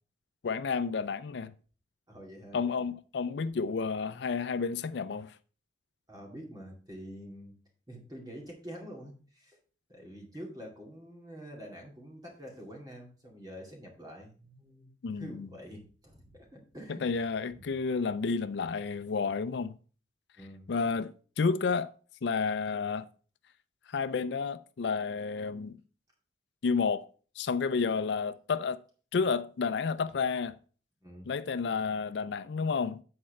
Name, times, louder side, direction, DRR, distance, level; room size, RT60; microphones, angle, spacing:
voice 1, 0.4-1.5 2.5-5.4 15.0-15.5 17.0-19.8 20.7-21.9 22.2-23.1 23.9-25.8 26.6-27.1 27.4-28.8 29.1-30.5 31.3-33.0, left 5 dB, 65° left, 0.4 m, -31 dB
voice 2, 2.1-2.9 6.1-7.5 7.9-9.6 9.9-17.3 17.5-17.6 20.4-20.7 31.0-31.3, equal, 20° right, 2.3 m, -47 dB
8.6 x 4.3 x 5.5 m
head